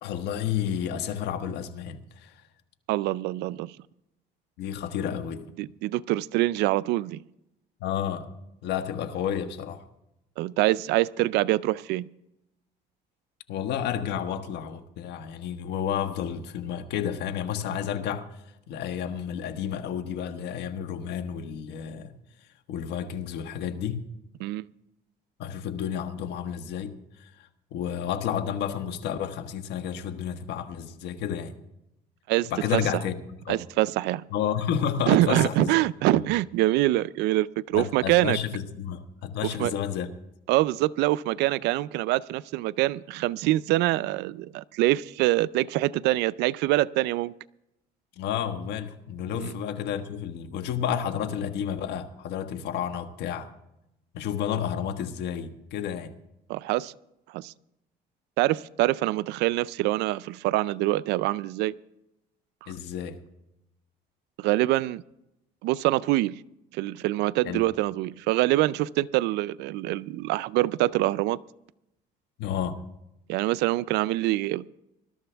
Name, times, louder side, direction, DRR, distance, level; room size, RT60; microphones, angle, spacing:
voice 1, 0.0-2.4 4.6-5.5 7.8-8.3 8.6-9.8 13.5-18.3 18.7-22.1 22.7-24.0 25.4-31.5 32.5-33.2 33.4-33.6 34.3-35.8 36.1-36.3 37.7-40.1 48.2-53.5 54.1-56.1 62.7-63.2 67.4-67.7 72.4-72.8, left 9 dB, 80° left, 1.4 m, -31 dB
voice 2, 2.9-3.8 5.6-7.2 10.4-12.1 24.4-24.7 32.3-33.0 33.5-34.2 35.1-38.4 39.4-39.7 40.5-47.3 49.3-49.5 56.5-56.9 57.3-57.5 58.4-61.7 64.4-65.0 65.6-66.4 66.7-71.4 73.3-74.7, right 17 dB, 90° right, 0.4 m, -25 dB
20.5 x 13.0 x 3.4 m
cardioid pair, 110°, 17 cm